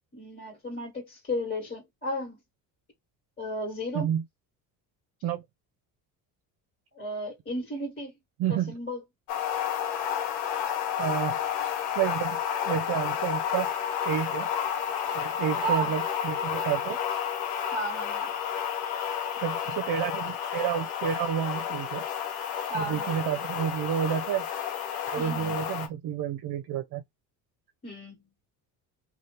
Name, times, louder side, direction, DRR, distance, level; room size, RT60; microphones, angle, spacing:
voice 1, 0.1-2.4 3.4-4.1 6.9-8.1 8.5-9.0 15.6-15.9 17.7-18.3 22.7-23.1 25.2-25.5 27.8-28.2, equal, 25° left, 1.6 m, -33 dB
voice 2, 8.4-8.8 11.0-11.4 12.0-12.4 12.6-13.7 14.0-14.5 15.1-17.0 19.4-22.0 22.7-24.5 25.1-27.0, right 9 dB, 55° right, 0.6 m, -30 dB
sound 1, 9.3-25.9, left 9 dB, 85° left, 0.9 m, -31 dB
2.7 x 2.4 x 3.3 m
supercardioid pair, 85°, 41 cm